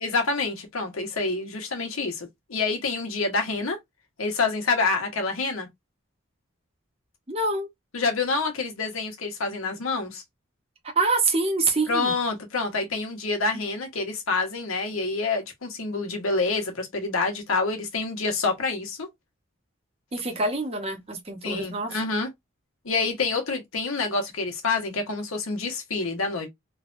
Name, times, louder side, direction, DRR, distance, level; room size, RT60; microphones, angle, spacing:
voice 1, 0.0-3.8 4.2-5.7 7.9-10.2 11.9-19.1 21.4-22.3 22.8-26.5, left 3 dB, 85° left, 1.0 m, -27 dB
voice 2, 7.3-7.7 11.0-12.1 20.1-21.9, right 3 dB, 30° right, 0.7 m, -25 dB
3.2 x 2.2 x 2.5 m
head